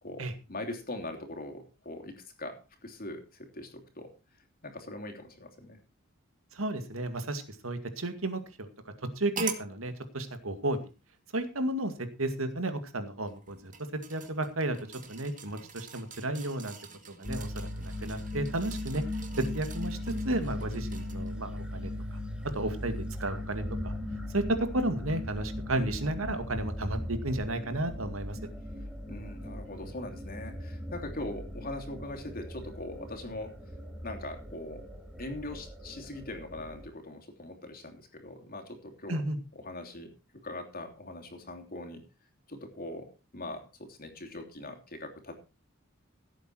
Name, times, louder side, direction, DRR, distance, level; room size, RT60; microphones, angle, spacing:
voice 1, 0.0-2.5 2.8-4.1 4.6-5.8 29.1-33.5 34.0-34.8 35.2-39.2 39.5-40.1 40.4-42.0 42.5-45.4, left 2 dB, 45° left, 4 dB, 3.1 m, -41 dB
voice 2, 6.5-8.7 9.2-10.8 11.3-13.7 14.1-14.8 15.1-16.8 17.2-19.0 19.4-20.0 20.3-22.2 22.5-23.9 24.3-28.4 39.1-39.4, right 1 dB, 80° right, 8 dB, 2.2 m, -33 dB
sound 1, 9.4-9.7 10.7-10.8 13.2-21.3 21.8-21.9, right 5 dB, 40° right, 2.0 m, -44 dB
sound 2, 17.2-36.9, left 1 dB, 5° right, 2.2 m, -38 dB
16.5 x 8.4 x 4.6 m, 0.31 s
head